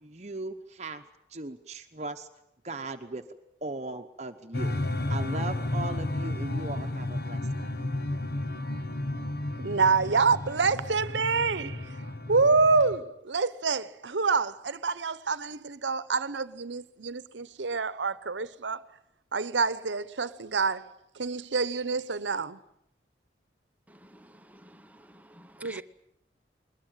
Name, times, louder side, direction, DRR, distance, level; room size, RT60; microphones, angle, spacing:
voice 1, 0.0-1.0 1.3-2.3 2.6-3.3 3.6-4.8 5.1-7.7, right 2 dB, 40° right, 1.0 m, -38 dB
sound 1, 4.5-13.0, left 1 dB, 55° left, 1.5 m, -32 dB
voice 2, 9.6-11.9 12.3-18.8 19.3-20.9 21.2-22.6 25.6-25.8, right 4 dB, 85° right, 1.0 m, -27 dB
voice 3, 24.0-25.8, right 1 dB, 10° right, 0.9 m, -50 dB
21.5 x 20.5 x 9.1 m
head